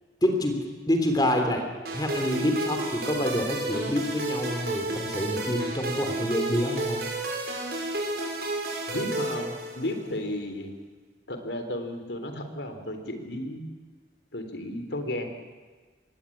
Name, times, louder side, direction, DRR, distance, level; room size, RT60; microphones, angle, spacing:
voice 1, 0.2-1.6 1.9-7.0, left 1 dB, 20° left, 4 dB, 3.4 m, -27 dB
sound 1, 1.9-10.1, right 2 dB, 60° right, 6.0 m, -32 dB
voice 2, 8.9-10.7 11.3-13.6 14.3-15.3, left 1 dB, 85° left, 6 dB, 3.8 m, -33 dB
27.0 x 21.5 x 8.7 m, 1.4 s
head